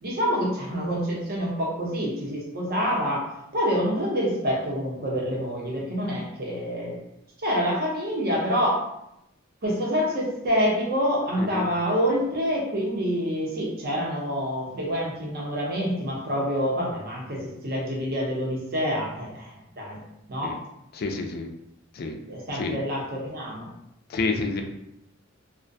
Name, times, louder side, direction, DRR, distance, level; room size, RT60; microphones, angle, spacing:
voice 1, 0.0-7.0 7.4-8.8 9.6-20.0 20.3-20.6 22.3-23.7, equal, 50° right, -3 dB, 0.7 m, -27 dB
voice 2, 20.9-21.5 21.9-22.2 22.5-22.7 24.1-24.6, left 3 dB, 45° left, 4 dB, 0.3 m, -29 dB
2.4 x 2.1 x 2.5 m, 0.81 s
head